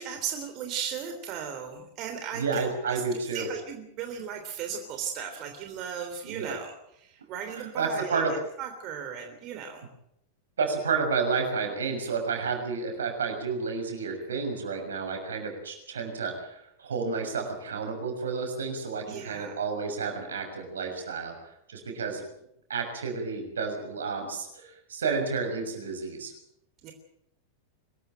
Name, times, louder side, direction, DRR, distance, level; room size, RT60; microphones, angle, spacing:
voice 1, 0.0-8.2 8.6-9.9 19.1-19.6 26.8-26.9, right 8 dB, 45° right, 5 dB, 3.4 m, -37 dB
voice 2, 2.3-3.5 6.2-6.5 7.5-8.3 10.6-22.2 22.7-26.3, right 5 dB, 80° right, 4 dB, 6.5 m, -31 dB
24.0 x 14.0 x 9.2 m, 0.76 s
hypercardioid pair, 95°, 0 cm